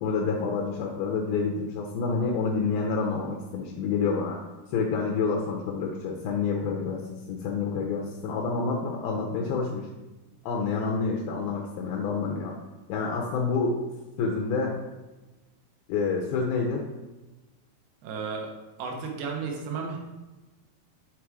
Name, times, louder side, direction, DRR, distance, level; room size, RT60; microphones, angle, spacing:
voice 1, 0.0-4.4 4.7-7.0 7.3-9.9 10.4-12.5 12.9-13.8 14.2-14.8 15.9-16.8, left 4 dB, 80° left, 0 dB, 2.4 m, -28 dB
voice 2, 18.0-18.5 18.8-20.0, right 5 dB, 80° right, 1 dB, 3.0 m, -33 dB
7.3 x 3.4 x 4.7 m, 1.1 s
omnidirectional pair, 4.6 m